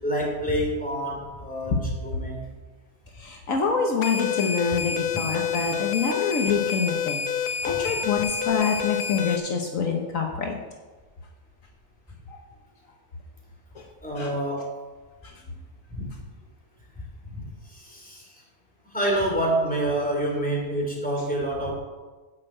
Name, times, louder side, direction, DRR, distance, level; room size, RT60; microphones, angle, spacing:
voice 1, 0.0-2.5 7.6-7.8 14.0-14.7 15.9-16.0 17.2-18.4 18.8-21.7, right 1 dB, 5° left, -2 dB, 3.1 m, -28 dB
voice 2, 3.2-7.2 7.6-10.6 12.3-12.4 13.7-13.9 14.2-14.3, left 5 dB, 65° left, 2 dB, 1.5 m, -26 dB
sound 1, 4.0-9.4, left 7 dB, 85° left, 1.4 m, -28 dB
10.5 x 6.6 x 7.8 m, 1.3 s
omnidirectional pair, 1.5 m